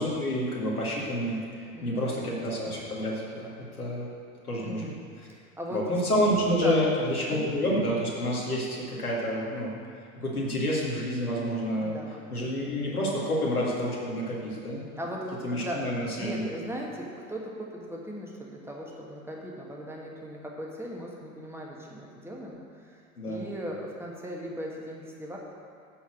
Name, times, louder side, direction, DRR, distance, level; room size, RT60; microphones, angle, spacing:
voice 1, 0.0-4.1 4.4-4.8 5.7-9.7 10.2-12.0 12.3-14.8 15.4-16.4 23.2-23.4, equal, 85° left, -5 dB, 2.3 m, -29 dB
voice 2, 1.7-2.1 4.6-5.0 5.3-5.8 6.5-6.8 7.3-7.5 11.7-12.2 15.0-25.4, equal, 5° right, -2 dB, 1.5 m, -38 dB
11.0 x 4.5 x 6.4 m, 2.2 s
figure-of-eight pair, 85°, 43 cm